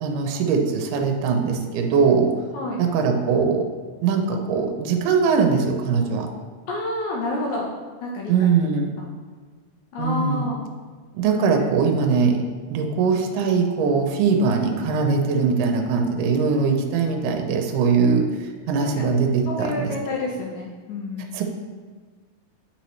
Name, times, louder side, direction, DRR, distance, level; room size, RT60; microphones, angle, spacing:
voice 1, 0.0-2.3 2.8-3.7 4.0-6.3 8.3-8.9 10.0-10.5 11.1-12.4 12.7-19.9 21.3-21.4, right 5 dB, 80° right, 3 dB, 2.1 m, -21 dB
voice 2, 2.5-2.8 6.7-7.7 8.0-8.5 9.0-9.1 9.9-10.7 19.0-19.1 19.5-21.4, left 1 dB, 75° left, -2 dB, 2.0 m, -29 dB
8.9 x 4.0 x 3.1 m, 1.5 s
omnidirectional pair, 3.8 m